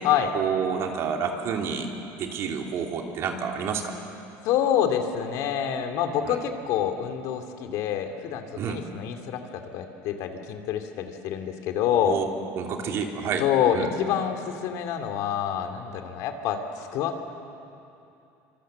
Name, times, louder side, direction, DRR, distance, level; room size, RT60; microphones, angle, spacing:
voice 1, 0.3-1.9 2.2-3.9 6.2-6.4 8.6-8.8 11.9-12.3 12.6-13.5 13.7-13.9, right 7 dB, 45° right, 2 dB, 3.1 m, -29 dB
voice 2, 4.4-12.2 13.4-17.2, left 9 dB, 60° left, 6 dB, 2.6 m, -27 dB
26.0 x 25.5 x 7.8 m, 2.7 s
cardioid pair, 145°, 6 cm